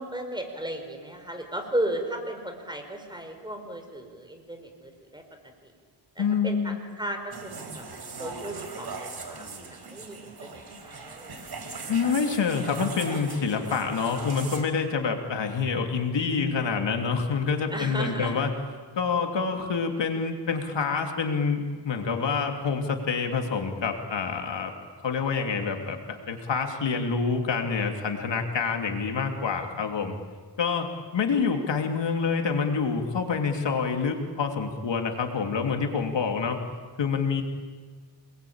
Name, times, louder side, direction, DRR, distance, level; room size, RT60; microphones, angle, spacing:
voice 1, 0.0-5.2 5.6-5.7 6.1-7.8 8.2-11.4 17.7-18.4 30.7-30.8, right 1 dB, 10° right, 5 dB, 4.9 m, -35 dB
voice 2, 6.2-6.8 11.9-18.5 18.9-24.7 25.0-30.1 30.6-36.6 37.0-37.4, left 5 dB, 70° left, 4 dB, 2.9 m, -27 dB
sound 1, 7.3-14.6, right 4 dB, 60° right, 4.6 m, -39 dB
28.0 x 21.0 x 8.8 m, 1.5 s
cardioid pair, 95°, 44 cm